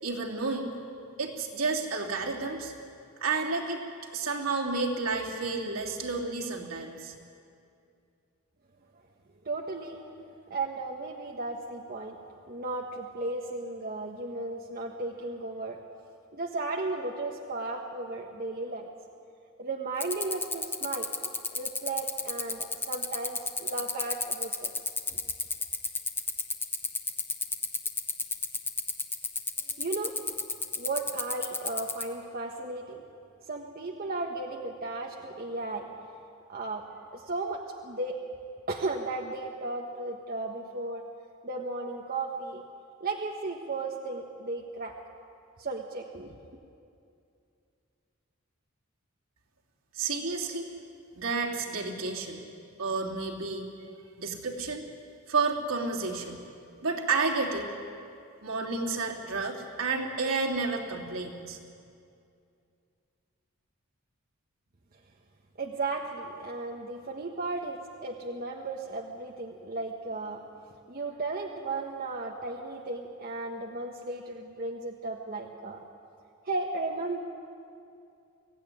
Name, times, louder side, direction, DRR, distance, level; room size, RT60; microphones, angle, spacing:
voice 1, 0.0-0.7 1.2-2.7 3.2-3.8 4.1-7.1 49.9-50.7 51.1-52.4 52.8-53.6 54.2-54.8 55.3-56.4 56.8-57.7 58.4-61.6, right 4 dB, 75° right, 0 dB, 3.1 m, -31 dB
voice 2, 9.4-10.0 10.5-12.2 12.5-15.8 16.3-18.9 19.6-21.1 21.5-24.7 29.7-30.2 30.8-33.0 33.4-35.9 36.5-36.9 37.1-38.2 38.7-41.0 41.4-42.6 43.0-44.9 45.6-46.3 65.6-70.4 70.9-75.8 76.4-77.2, right 3 dB, 45° right, 1 dB, 1.3 m, -35 dB
sound 1, 20.0-32.0, left 3 dB, 10° left, 1.2 m, -30 dB
23.0 x 16.5 x 9.9 m, 2.5 s
head